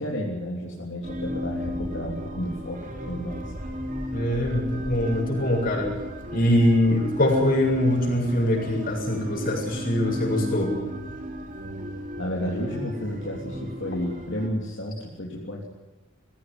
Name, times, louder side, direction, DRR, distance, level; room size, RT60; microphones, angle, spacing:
voice 1, 0.0-3.5 12.1-15.6, equal, 65° left, -3 dB, 3.5 m, -32 dB
sound 1, 1.0-14.5, left 1 dB, 40° right, 3.2 m, -35 dB
voice 2, 4.1-5.9 6.3-10.7, left 1 dB, 45° left, -2 dB, 7.7 m, -23 dB
21.0 x 16.5 x 9.8 m, 1.1 s
head